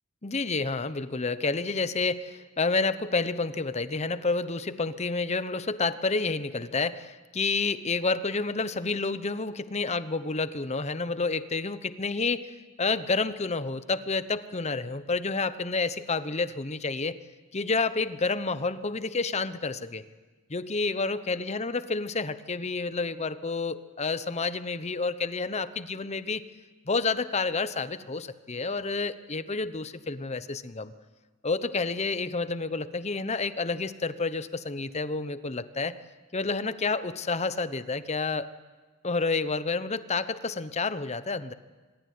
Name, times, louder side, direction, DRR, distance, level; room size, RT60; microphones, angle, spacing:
voice 1, 0.2-17.2 17.5-20.0 20.5-26.4 26.9-30.9 31.4-35.9 36.3-38.5 39.0-41.5, left 3 dB, 30° left, 13 dB, 0.9 m, -29 dB
25.0 x 22.0 x 9.5 m, 1.3 s
head